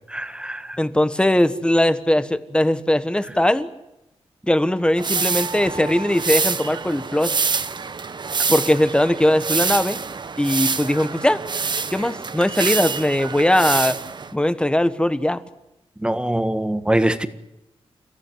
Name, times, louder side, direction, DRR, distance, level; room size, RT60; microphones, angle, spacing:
voice 1, 0.1-0.8 16.0-17.3, right 1 dB, 10° right, 10 dB, 1.5 m, -23 dB
voice 2, 0.8-3.7 4.5-7.4 8.5-10.0 10.4-11.4 11.9-14.0 14.3-15.4, left 1 dB, 10° left, 12 dB, 1.3 m, -20 dB
sound 1, 5.0-14.3, right 5 dB, 45° right, 1.1 m, -26 dB
29.5 x 15.5 x 9.3 m, 0.91 s
wide cardioid pair, 100°, 10 cm